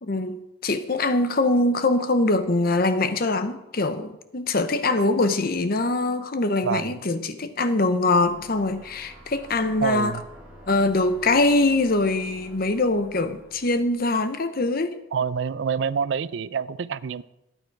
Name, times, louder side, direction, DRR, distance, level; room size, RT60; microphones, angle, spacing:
voice 1, 0.0-10.2 10.7-15.0, left 2 dB, 50° left, 11 dB, 0.8 m, -23 dB
voice 2, 6.6-7.0 9.8-10.2 15.1-17.2, right 6 dB, 65° right, 18 dB, 0.4 m, -27 dB
sound 1, 8.2-14.2, right 1 dB, 10° right, 3.2 m, -48 dB
14.0 x 9.1 x 4.6 m, 0.93 s
head